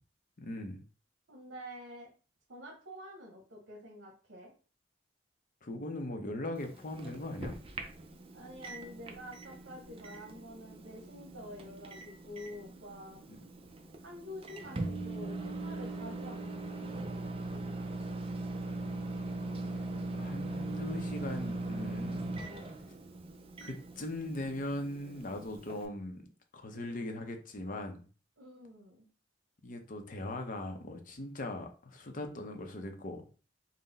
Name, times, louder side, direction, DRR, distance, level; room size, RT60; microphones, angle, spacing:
voice 1, 0.4-0.8 5.6-7.6 13.3-13.4 20.1-22.3 23.6-26.3 26.5-28.0 29.6-33.2, left 1 dB, 45° left, 5 dB, 0.6 m, -40 dB
voice 2, 1.3-2.1 2.5-4.5 8.3-13.2 14.0-16.6 16.8-18.2 26.7-27.2 28.4-29.1, left 1 dB, 80° right, -1 dB, 0.9 m, -48 dB
Microwave oven, 6.5-25.9, right 2 dB, 30° right, 0.5 m, -41 dB
3.7 x 2.1 x 4.0 m, 0.38 s
head